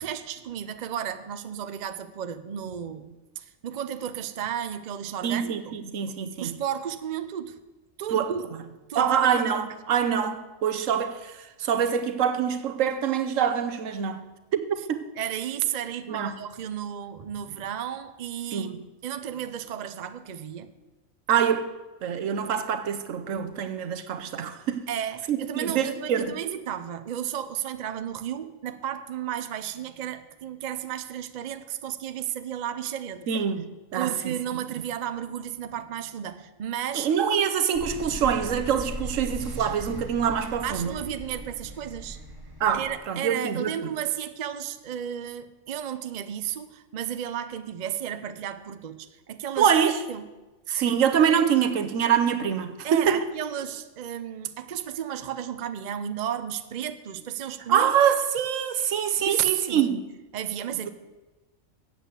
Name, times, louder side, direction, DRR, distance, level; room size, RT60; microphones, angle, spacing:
voice 1, 0.0-5.7 6.4-7.6 8.0-8.5 8.9-9.4 15.2-20.7 24.9-33.3 34.0-37.1 40.6-42.2 42.7-49.7 50.1-50.2 52.8-57.9 59.2-60.0 60.3-60.9, right 10 dB, 55° right, 0.5 m, -33 dB
voice 2, 5.2-6.6 8.1-8.3 8.9-11.3 11.6-14.2 14.5-15.0 16.1-16.4 18.5-18.8 21.3-21.7 22.0-24.8 25.3-26.4 33.3-34.4 36.9-40.9 42.6-43.9 49.6-50.0 50.7-53.2 57.7-60.0, right 8 dB, 70° right, 1.2 m, -25 dB
sound 1, 37.7-43.0, right 1 dB, 15° right, 1.4 m, -38 dB
8.2 x 7.7 x 8.1 m
omnidirectional pair, 1.4 m